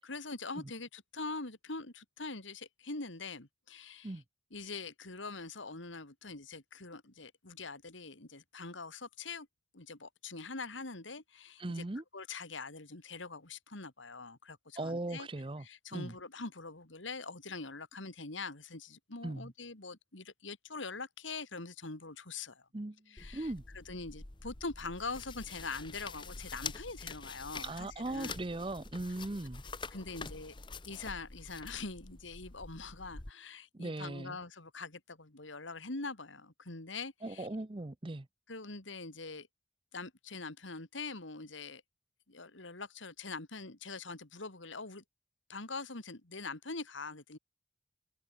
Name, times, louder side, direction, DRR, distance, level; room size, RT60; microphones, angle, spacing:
voice 1, 0.0-4.1 4.5-9.5 9.7-11.8 12.1-15.3 15.6-22.6 23.1-28.3 29.9-30.6 30.8-37.5 38.5-39.5 39.9-41.8 42.3-45.0 45.5-47.4, left 3 dB, 85° left, 2.8 m, -43 dB
voice 2, 11.6-12.0 14.8-15.7 15.9-16.1 19.2-19.5 22.7-23.6 27.6-29.6 33.7-34.4 37.2-38.3, right 2 dB, 25° right, 0.7 m, -39 dB
sound 1, 23.2-33.3, left 4 dB, 25° left, 1.0 m, -46 dB
head